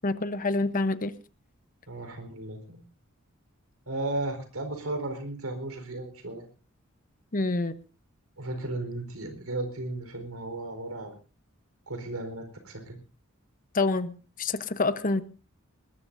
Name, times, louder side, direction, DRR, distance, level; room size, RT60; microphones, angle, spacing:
voice 1, 0.0-1.1 7.3-7.7 13.7-14.1 14.4-15.2, left 3 dB, 40° left, 12 dB, 0.9 m, -26 dB
voice 2, 1.9-2.8 3.9-6.5 8.4-11.1 11.9-13.0, right 2 dB, 85° right, 6 dB, 4.3 m, -35 dB
20.5 x 20.5 x 2.7 m, 0.35 s
head